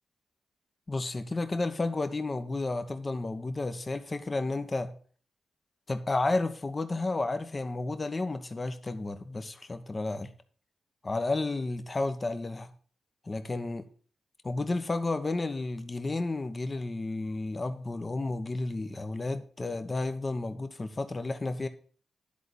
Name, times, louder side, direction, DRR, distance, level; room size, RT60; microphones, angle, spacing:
voice 1, 0.9-4.9 5.9-10.3 11.0-12.7 13.2-13.9 14.4-21.7, left 2 dB, 35° left, 8 dB, 1.1 m, -32 dB
10.5 x 4.1 x 6.3 m, 0.44 s
supercardioid pair, 45°, 0 cm